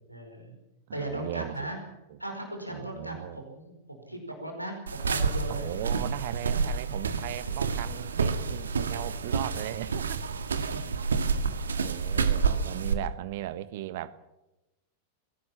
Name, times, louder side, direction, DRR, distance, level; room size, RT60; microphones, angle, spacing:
voice 1, 0.1-0.6 0.9-1.8 2.2-5.6 6.5-6.6 7.0-7.6 10.5-10.9 11.2-11.3, right 1 dB, 90° right, 3 dB, 4.9 m, -38 dB
voice 2, 0.9-1.7 2.1-2.2 2.7-3.4 5.5-10.2 11.4-14.2, right 13 dB, 50° right, 15 dB, 1.2 m, -37 dB
sound 1, 4.9-12.9, right 5 dB, 70° right, 1.7 m, -29 dB
22.0 x 17.5 x 7.2 m, 0.97 s
figure-of-eight pair, 90°, 0 cm